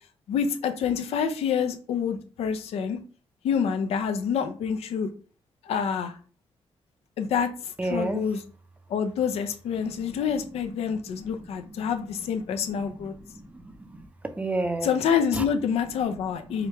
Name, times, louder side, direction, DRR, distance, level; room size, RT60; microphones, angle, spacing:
voice 1, 0.3-3.0 3.4-5.1 5.6-6.1 7.2-8.4 8.9-13.1 14.8-16.7, left 7 dB, 85° left, 0.5 m, -27 dB
voice 2, 7.8-8.2 9.8-10.4 10.8-10.9 11.4-12.3 12.7-14.1 14.4-15.0 15.3-15.5 16.6-16.7, right 2 dB, 15° right, 0.4 m, -33 dB
4.9 x 2.2 x 2.9 m
cardioid pair, 135°, 10 cm